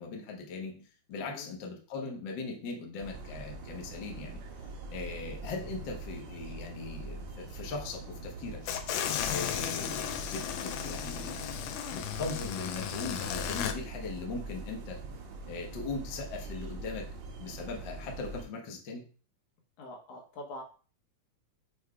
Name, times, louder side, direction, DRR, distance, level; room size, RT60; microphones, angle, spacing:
voice 1, 0.0-4.4 4.9-11.5 11.9-15.0 15.5-17.1 17.4-19.1, left 3 dB, 55° left, 1 dB, 1.3 m, -39 dB
voice 2, 1.2-1.5 19.8-20.6, left 1 dB, 70° left, 1 dB, 2.7 m, -44 dB
sound 1, 3.0-18.4, right 3 dB, 70° right, 2.2 m, -43 dB
sound 2, 8.7-13.7, left 10 dB, 90° left, 2.2 m, -35 dB
6.3 x 3.5 x 4.7 m, 0.39 s
omnidirectional pair, 3.6 m